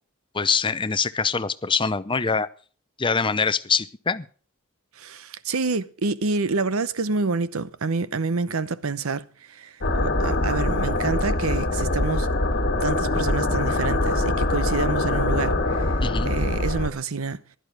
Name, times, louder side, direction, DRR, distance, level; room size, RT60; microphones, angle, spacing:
voice 1, 0.3-2.5 3.0-4.2 16.0-16.3, left 5 dB, 25° left, 0.7 m, -24 dB
voice 2, 5.0-12.3 12.8-15.9 16.2-17.4, right 4 dB, 75° right, 0.8 m, -28 dB
sound 1, 9.8-16.9, left 2 dB, 50° left, 1.7 m, -23 dB
15.5 x 11.5 x 5.2 m
head